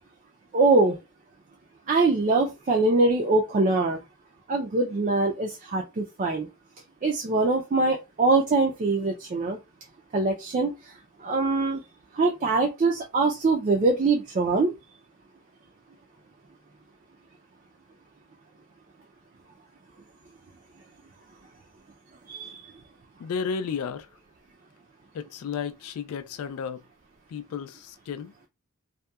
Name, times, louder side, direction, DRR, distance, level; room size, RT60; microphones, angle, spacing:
voice 1, 0.5-1.0 1.9-4.0 4.5-6.5 7.0-9.6 10.1-10.9 11.2-11.8 12.1-14.7 22.3-22.6, right 3 dB, 35° right, 0.4 m, -23 dB
voice 2, 23.2-24.1 25.1-26.8 27.3-28.3, left 6 dB, 80° left, 0.3 m, -33 dB
2.7 x 2.1 x 2.3 m
head